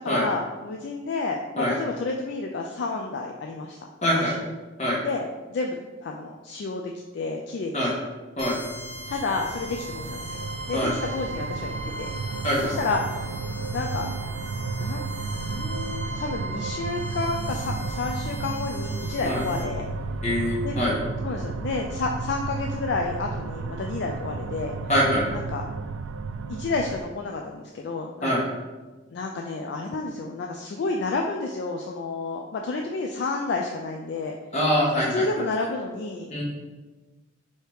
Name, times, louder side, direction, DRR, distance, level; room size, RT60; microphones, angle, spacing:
voice 1, 0.0-3.8 4.1-4.3 5.0-7.9 9.1-10.2 10.7-12.1 12.6-13.2 13.7-14.1 14.8-15.0 15.4-19.8 20.6-20.8 21.2-24.7 25.3-25.6 26.5-28.3 29.1-34.4 35.1-36.3, left 3 dB, 60° left, 1 dB, 0.3 m, -30 dB
voice 2, 4.0-4.3 4.8-5.0 7.7-7.9 8.4-8.6 10.7-10.9 12.4-12.7 19.2-19.4 20.2-20.9 24.9-25.3 28.2-28.4 34.5-35.3 36.3-36.4, equal, 35° left, -5 dB, 1.2 m, -23 dB
sound 1, 8.4-19.6, right 1 dB, 20° right, 1.2 m, -39 dB
sound 2, 8.4-27.0, right 4 dB, 85° right, 0.3 m, -33 dB
3.3 x 2.8 x 4.6 m, 1.2 s
head